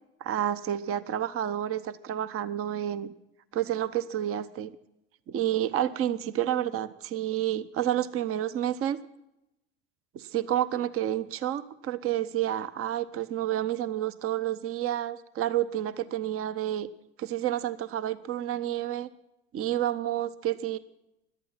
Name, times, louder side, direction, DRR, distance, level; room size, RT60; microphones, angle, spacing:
voice 1, 0.2-3.1 3.5-4.7 5.3-9.0 10.1-16.9 17.2-19.1 19.5-20.8, right 11 dB, 40° right, 14 dB, 0.9 m, -29 dB
17.5 x 11.5 x 5.8 m, 0.88 s
hypercardioid pair, 75°, 33 cm